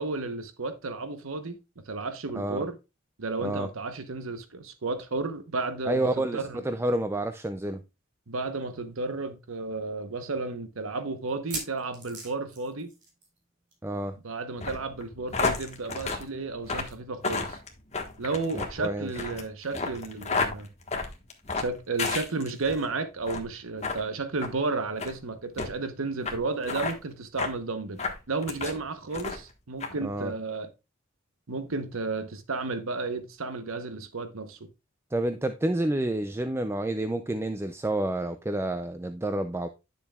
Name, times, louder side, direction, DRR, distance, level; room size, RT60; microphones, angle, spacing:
voice 1, 0.0-1.6 1.9-2.8 3.2-6.6 8.3-12.9 14.2-17.6 18.2-20.7 21.6-28.0 28.3-30.7 31.5-34.6, right 3 dB, 90° right, 1.0 m, -33 dB
voice 2, 2.3-2.6 3.4-3.7 5.9-7.8 13.8-14.2 18.5-19.1 30.0-30.3 35.1-39.7, right 1 dB, 10° right, 0.4 m, -29 dB
sound 1, 8.6-8.7 9.0-9.1 9.7-9.8 11.3-13.4 13.7-13.9 14.2-14.3 15.7-15.8, right 3 dB, 60° right, 4.1 m, -40 dB
sound 2, 14.6-22.8 23.2-23.5 23.8-24.0 24.4-24.5 25.0-25.1 25.6-25.7 26.2-26.4 26.6-26.9 27.4-27.5 28.0-28.8 29.1-29.5 29.8-29.9, left 4 dB, 35° left, 1.4 m, -31 dB
10.0 x 7.0 x 2.3 m
head